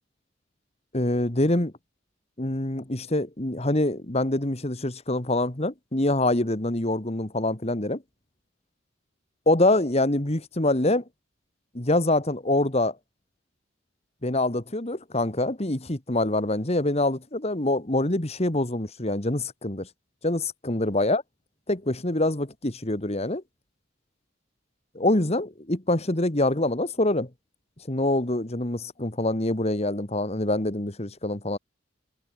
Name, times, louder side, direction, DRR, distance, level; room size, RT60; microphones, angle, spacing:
voice 1, 0.9-1.7 2.4-8.0 9.5-11.0 11.7-13.0 14.2-19.9 20.2-21.2 21.7-23.4 25.0-27.3 27.9-31.6, left 1 dB, 35° left, 1.9 m, -25 dB
head